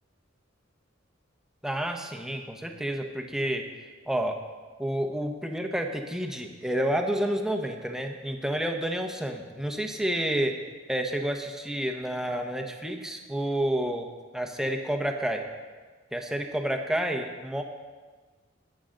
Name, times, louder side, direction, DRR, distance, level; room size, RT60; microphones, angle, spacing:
voice 1, 1.6-3.6 4.1-4.4 4.8-10.5 10.9-14.1 14.3-15.4 16.1-17.6, right 1 dB, 5° right, 3 dB, 1.0 m, -29 dB
20.0 x 7.9 x 3.9 m, 1.4 s
head